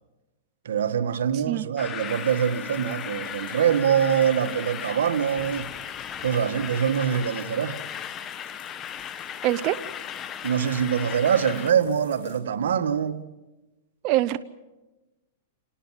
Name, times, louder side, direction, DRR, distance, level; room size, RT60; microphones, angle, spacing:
voice 1, 0.6-5.7 6.2-7.8 10.4-13.2, right 8 dB, 85° right, 1.5 m, -24 dB
sound 1, 1.8-11.7, left 9 dB, 25° left, 1.1 m, -36 dB
sound 2, 2.0-12.4, left 9 dB, 50° left, 6.1 m, -54 dB
voice 2, 9.4-9.8 14.0-14.4, right 15 dB, 40° right, 0.8 m, -23 dB
27.5 x 19.0 x 7.4 m
hypercardioid pair, 145°, 0 cm